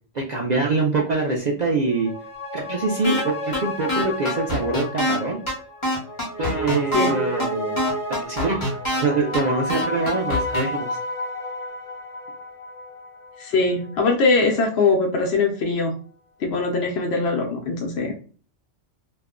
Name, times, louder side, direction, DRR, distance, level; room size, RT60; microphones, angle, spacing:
voice 1, 0.1-2.1 2.5-5.4 6.4-7.8 8.2-8.8 9.0-11.0, right 3 dB, 60° right, -1 dB, 0.4 m, -24 dB
sound 1, 1.7-14.6 14.9-15.0, equal, 50° left, 0.4 m, -32 dB
sound 2, 3.0-3.2 3.5-3.6 3.9-5.2 5.5-5.6 5.8-7.1 7.4-7.5 7.8-9.0 9.3-9.4 9.7-10.6, left 1 dB, 25° left, 0.9 m, -24 dB
voice 2, 13.4-15.9 16.4-18.1, left 3 dB, 65° left, 0 dB, 0.8 m, -21 dB
2.4 x 2.1 x 3.6 m, 0.40 s
omnidirectional pair, 1.3 m